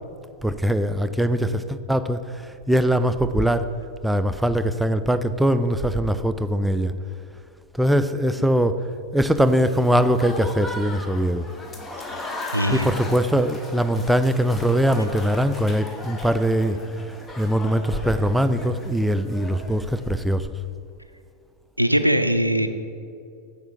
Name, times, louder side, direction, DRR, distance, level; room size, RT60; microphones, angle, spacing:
voice 1, 0.4-3.7 4.0-6.9 7.8-8.8 9.1-11.5 12.7-16.8 17.4-20.5, equal, 5° right, 10 dB, 0.3 m, -21 dB
Applause / Crowd, 9.4-20.2, left 2 dB, 15° left, 0.7 m, -37 dB
voice 2, 12.5-12.9 21.8-22.7, equal, 90° right, 9 dB, 0.4 m, -20 dB
8.0 x 3.4 x 6.4 m, 2.4 s
figure-of-eight pair, 90°, 0 cm